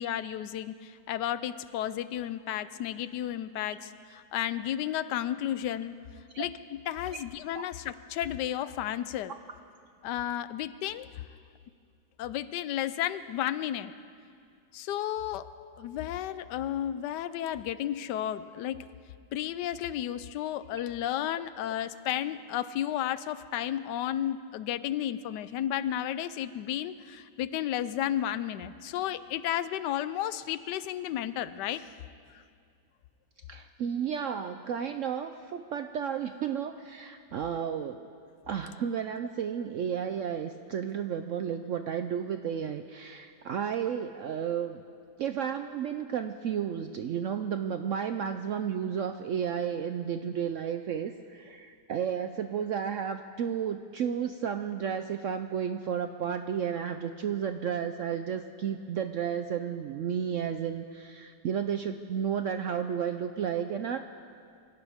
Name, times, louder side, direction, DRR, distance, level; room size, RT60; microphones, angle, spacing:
voice 1, 0.0-6.0 6.4-9.3 10.0-11.1 12.2-13.9 14.7-15.5 15.8-18.9 19.3-31.9 32.3-32.4, left 11 dB, 80° left, 14 dB, 1.2 m, -33 dB
voice 2, 33.5-38.0 38.5-44.8 45.2-64.0, right 8 dB, 70° right, 8 dB, 0.7 m, -32 dB
24.5 x 16.5 x 3.6 m, 2.2 s
omnidirectional pair, 1.8 m